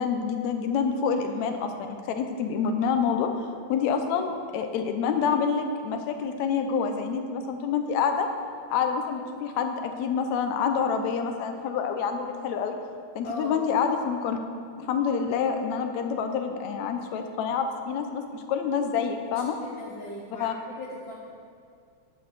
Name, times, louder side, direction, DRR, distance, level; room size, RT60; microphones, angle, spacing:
voice 1, 0.0-3.3 3.7-8.3 8.7-12.8 13.2-14.4 14.8-19.6 20.4-20.5, left 6 dB, 75° left, 6 dB, 2.0 m, -27 dB
voice 2, 1.4-1.8 13.2-13.6 19.6-20.5 20.8-21.1, left 1 dB, 55° left, -5 dB, 1.3 m, -39 dB
10.5 x 6.3 x 6.8 m, 2.2 s
omnidirectional pair, 3.4 m